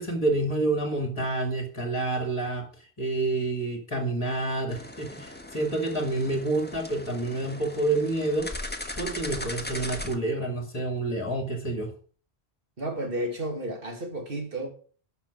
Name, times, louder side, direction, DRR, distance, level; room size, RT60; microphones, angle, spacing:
voice 1, 0.0-2.7 3.0-8.5 9.0-11.9, right 2 dB, 30° left, 2.3 m, -28 dB
sound 1, 4.7-10.2, left 1 dB, 10° left, 1.4 m, -38 dB
voice 2, 12.8-14.7, right 1 dB, 60° right, 2.5 m, -32 dB
12.5 x 5.8 x 7.3 m
omnidirectional pair, 1.1 m